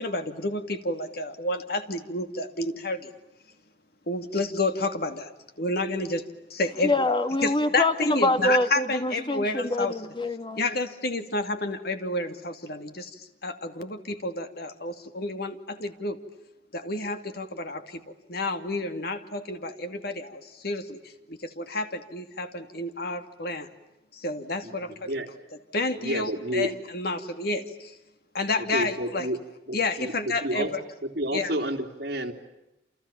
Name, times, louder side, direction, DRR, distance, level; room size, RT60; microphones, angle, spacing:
voice 1, 0.0-3.1 4.1-6.2 6.5-6.9 7.4-9.9 10.6-16.2 16.7-18.0 18.3-21.0 21.3-23.7 24.1-25.2 25.7-27.9 28.3-29.3 29.7-30.8 31.3-31.5, left 2 dB, 65° left, 2.6 m, -30 dB
voice 2, 6.8-10.8, left 2 dB, 30° left, 1.8 m, -25 dB
voice 3, 26.0-26.7 28.6-29.4 29.7-30.7 31.0-32.3, right 1 dB, 60° right, 3.4 m, -30 dB
29.5 x 28.0 x 7.2 m
head